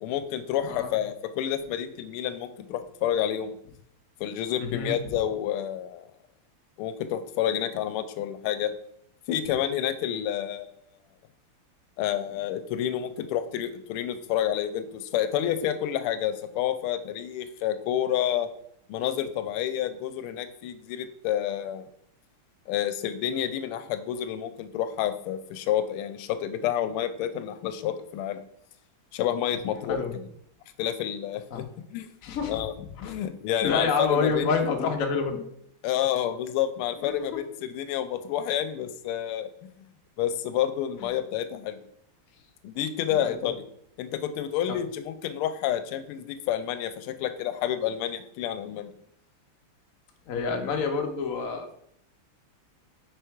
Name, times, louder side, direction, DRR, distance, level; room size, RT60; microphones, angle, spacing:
voice 1, 0.0-3.6 4.2-6.1 6.8-8.7 9.3-10.7 12.0-18.5 18.9-21.9 22.7-28.4 29.1-30.0 30.8-32.1 32.4-32.7 33.0-34.4 35.8-39.5 40.2-41.8 42.6-43.6 44.0-48.9, left 10 dB, 90° left, 10 dB, 1.5 m, -29 dB
voice 2, 4.6-5.2 29.9-30.1 31.5-31.6 32.2-33.1 33.6-35.4 41.0-41.1 43.1-43.5 44.7-44.8 50.3-51.7, left 5 dB, 60° left, 4 dB, 0.9 m, -28 dB
4.9 x 4.6 x 4.5 m, 0.71 s
omnidirectional pair, 2.3 m